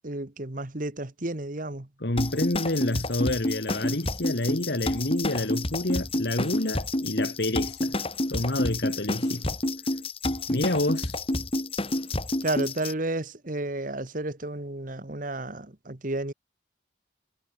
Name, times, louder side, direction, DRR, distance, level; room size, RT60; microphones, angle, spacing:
voice 1, 0.0-1.9 12.4-16.3, right 2 dB, 40° right, 1.4 m, -32 dB
voice 2, 2.0-8.0 8.3-9.6 10.5-11.2, left 1 dB, 55° left, 1.8 m, -28 dB
sound 1, 2.2-12.9, left 1 dB, 30° left, 1.9 m, -29 dB
head